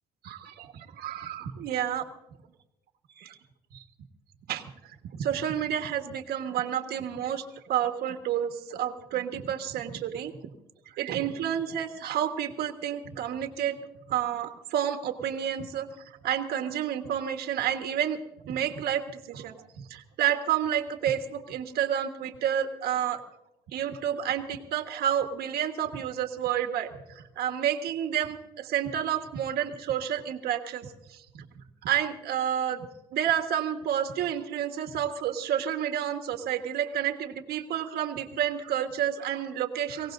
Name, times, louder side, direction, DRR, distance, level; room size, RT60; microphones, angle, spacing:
voice 1, 0.2-2.0 3.1-3.4 3.7-3.8 4.5-4.7 5.1-10.5 10.9-13.8 14.1-18.2 18.4-19.5 19.9-23.2 23.7-31.5 31.8-32.9 33.1-40.1, right 10 dB, 70° right, 5 dB, 1.4 m, -30 dB
24.0 x 17.5 x 2.6 m, 0.90 s
cardioid pair, 110°, 17 cm